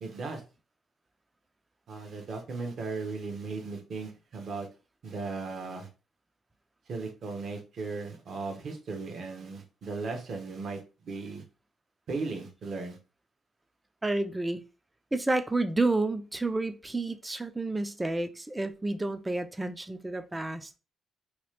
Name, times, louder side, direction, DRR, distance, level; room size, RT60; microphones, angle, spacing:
voice 1, 0.0-0.4 1.9-4.7 5.0-5.9 6.9-11.4 12.1-13.0, right 4 dB, 60° right, 0.9 m, -37 dB
voice 2, 14.0-14.6 15.1-20.7, right 2 dB, 15° right, 0.4 m, -30 dB
2.9 x 2.4 x 3.2 m
cardioid pair, 90°, 0 cm